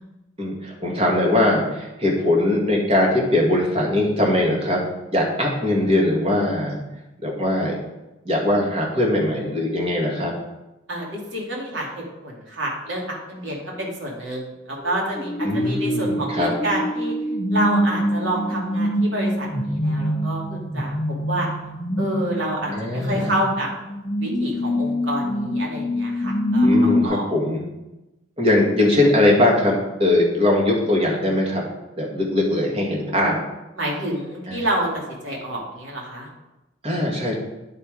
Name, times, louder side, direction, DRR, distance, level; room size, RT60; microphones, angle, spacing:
voice 1, 0.4-4.8 5.1-6.8 7.2-7.7 8.3-10.3 15.4-16.5 22.7-23.3 26.6-27.6 28.4-31.6 32.0-33.4 34.5-34.6 36.8-37.4, left 1 dB, 30° right, -2 dB, 1.8 m, -21 dB
voice 2, 10.9-17.1 17.5-20.9 21.3-21.5 22.0-23.7 24.2-27.2 33.8-36.3, right 1 dB, 75° right, -2 dB, 2.5 m, -28 dB
sound 1, 14.8-27.0, equal, 25° left, 0.6 m, -24 dB
10.5 x 4.4 x 5.0 m, 0.99 s
head